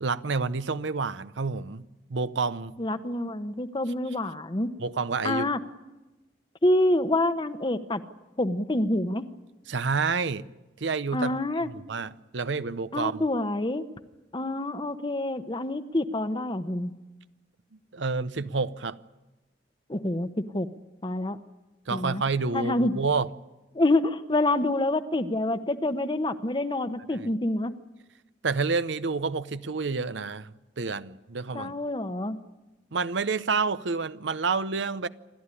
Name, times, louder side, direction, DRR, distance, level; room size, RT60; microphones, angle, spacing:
voice 1, 0.0-2.7 4.8-5.5 9.7-10.5 10.8-11.3 11.7-13.2 17.9-19.0 21.9-23.3 27.2-27.3 28.4-31.7 32.9-35.1, right 4 dB, 85° right, 0.8 m, -29 dB
voice 2, 2.8-4.7 5.2-5.6 6.6-8.0 8.4-9.2 11.1-11.7 12.9-13.8 14.3-16.9 19.9-20.7 21.0-21.4 21.9-22.2 22.5-23.0 23.7-27.7 31.5-32.4, left 1 dB, 25° left, 1.0 m, -27 dB
27.5 x 13.5 x 9.9 m
head